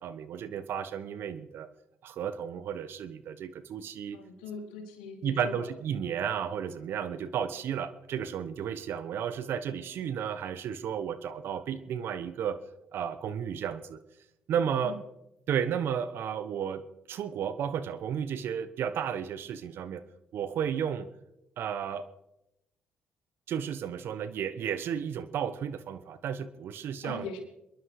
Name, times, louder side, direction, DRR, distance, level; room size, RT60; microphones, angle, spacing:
voice 1, 0.0-1.7 2.0-4.2 5.2-12.6 12.9-14.0 14.5-15.0 15.5-16.8 17.1-20.0 20.3-21.1 21.6-22.1 23.5-27.3, right 8 dB, 65° right, 13 dB, 1.2 m, -33 dB
voice 2, 4.1-5.7 14.8-15.0 27.0-27.4, left 4 dB, 90° left, 4 dB, 2.5 m, -41 dB
27.0 x 11.0 x 4.9 m, 0.88 s
hypercardioid pair, 55°, 4 cm